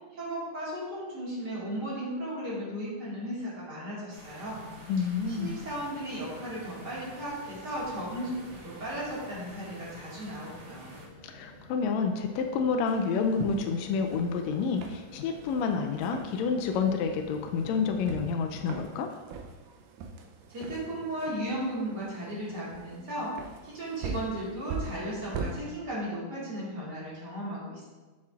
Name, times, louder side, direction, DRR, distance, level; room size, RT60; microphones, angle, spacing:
voice 1, 0.1-4.6 5.3-10.9 20.5-27.9, right 1 dB, 35° right, -8 dB, 2.1 m, -35 dB
sound 1, 4.1-11.1, right 2 dB, 65° right, 1.4 m, -50 dB
sound 2, 4.5-18.6, equal, 20° right, 2.0 m, -51 dB
voice 2, 4.9-5.6 11.2-19.1, left 5 dB, 90° left, 5 dB, 1.5 m, -29 dB
sound 3, 12.9-25.6, right 4 dB, 85° right, 2.2 m, -42 dB
7.5 x 7.3 x 2.4 m, 1.3 s
omnidirectional pair, 3.6 m